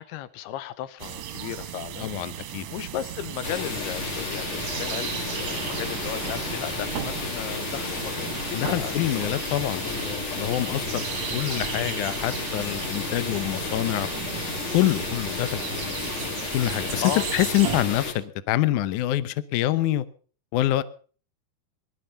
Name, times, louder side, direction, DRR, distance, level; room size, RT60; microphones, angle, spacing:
voice 1, 0.0-2.1 2.7-9.1 10.7-11.1 17.0-17.3, left 11 dB, 90° left, 2.9 m, -35 dB
sound 1, 1.0-17.8, right 10 dB, 65° right, 1.8 m, -35 dB
voice 2, 2.0-2.7 8.5-11.0 11.3-14.1 14.7-16.0 16.5-17.0 17.3-20.1 20.5-20.8, left 14 dB, 75° left, 1.9 m, -26 dB
sound 2, 3.4-18.1, left 4 dB, 50° left, 4.3 m, -32 dB
20.0 x 12.0 x 5.7 m
omnidirectional pair, 4.5 m